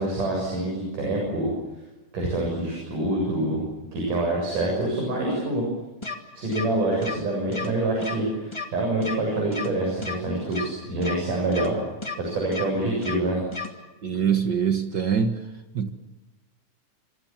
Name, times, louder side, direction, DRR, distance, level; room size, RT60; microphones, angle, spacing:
voice 1, 0.0-1.5 2.1-3.6 3.9-5.6 6.4-11.7 12.2-13.4, right 1 dB, 85° right, -1 dB, 8.8 m, -26 dB
sound 1, 6.0-6.1 6.5-6.6 7.0-7.1 7.5-7.7 8.0-8.1 8.5-8.6 9.0-9.1 9.5-9.7 10.0-10.1 10.5-10.6 11.0-11.1 11.5-11.7 12.0-12.1 12.5-12.6 13.0-13.1 13.5-13.7, left 4 dB, 10° left, 1.8 m, -32 dB
voice 2, 14.0-15.5 15.7-15.9, right 7 dB, 50° right, 7 dB, 1.4 m, -24 dB
26.5 x 24.5 x 7.4 m, 1.1 s
omnidirectional pair, 3.6 m